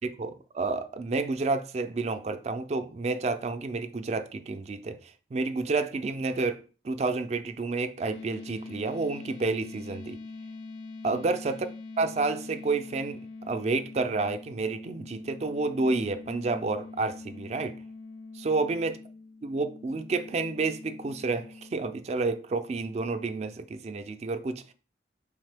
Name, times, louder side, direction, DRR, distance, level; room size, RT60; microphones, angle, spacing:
voice 1, 0.0-10.2 11.0-11.6 12.0-13.2 13.5-17.8 18.3-19.0 19.4-24.7, right 3 dB, 35° right, 0.3 m, -30 dB
sound 1, 8.1-21.9, left 3 dB, 80° left, 0.4 m, -44 dB
4.3 x 3.5 x 3.3 m
head